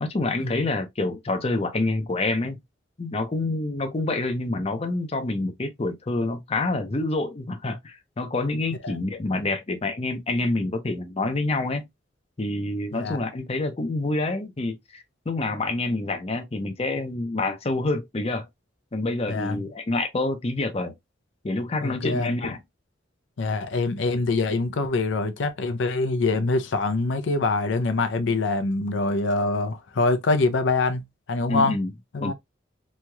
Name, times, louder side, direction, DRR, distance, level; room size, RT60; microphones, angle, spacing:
voice 1, 0.0-2.6 3.0-11.9 12.4-18.5 18.9-20.9 21.4-22.6 31.5-31.9 32.2-32.3, left 2 dB, 30° left, 0.5 m, -27 dB
voice 2, 19.3-19.6 21.8-22.5 23.4-31.7 32.1-32.3, left 3 dB, 80° left, 0.5 m, -25 dB
3.1 x 2.7 x 2.2 m
head